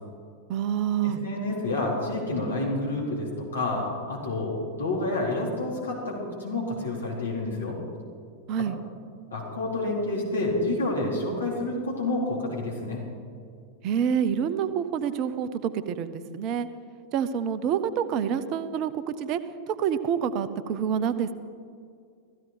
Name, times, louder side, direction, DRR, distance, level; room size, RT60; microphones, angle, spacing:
voice 1, 0.5-1.2 8.5-8.8 13.8-16.7 17.1-19.4 19.7-21.3, right 8 dB, 40° right, 11 dB, 0.8 m, -27 dB
voice 2, 1.0-4.5 4.8-7.8 9.3-13.0, left 2 dB, 70° left, -4 dB, 4.2 m, -29 dB
15.5 x 15.0 x 5.1 m, 2.3 s
figure-of-eight pair, 90°, 0 cm